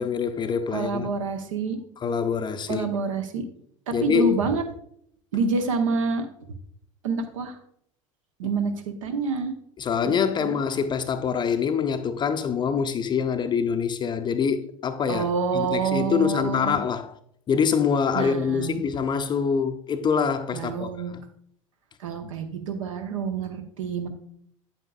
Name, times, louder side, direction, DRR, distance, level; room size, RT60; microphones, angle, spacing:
voice 1, 0.0-1.1 2.0-2.9 3.9-4.3 9.8-17.1 17.5-21.2, left 6 dB, 25° left, 0.5 m, -25 dB
voice 2, 0.7-1.8 2.7-3.4 3.9-4.6 5.3-6.2 7.0-7.6 8.4-9.5 10.0-10.1 10.4-10.5 15.1-16.8 18.1-18.8 20.5-21.1 22.0-24.1, right 4 dB, 75° right, 1.0 m, -27 dB
8.8 x 8.1 x 2.4 m
figure-of-eight pair, 80°, 17 cm